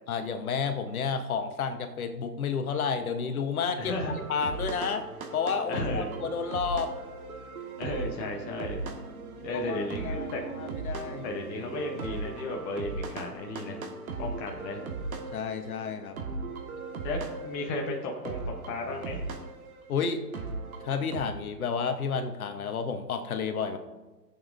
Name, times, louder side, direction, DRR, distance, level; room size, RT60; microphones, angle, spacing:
voice 1, 0.1-3.9 4.3-5.1 5.3-6.9 9.5-10.3 10.6-11.3 15.3-16.2 19.9-20.2 20.8-23.8, left 6 dB, 55° left, 8 dB, 1.1 m, -31 dB
voice 2, 3.8-4.2 5.7-6.1 7.8-8.8 9.4-10.4 11.2-13.8 14.2-14.8 17.0-18.4 18.7-19.2, left 2 dB, 15° left, 0 dB, 0.8 m, -34 dB
sound 1, 3.8-21.3, right 3 dB, 55° right, 1.6 m, -38 dB
19.0 x 7.2 x 2.6 m, 1.2 s
hypercardioid pair, 135°, 50 cm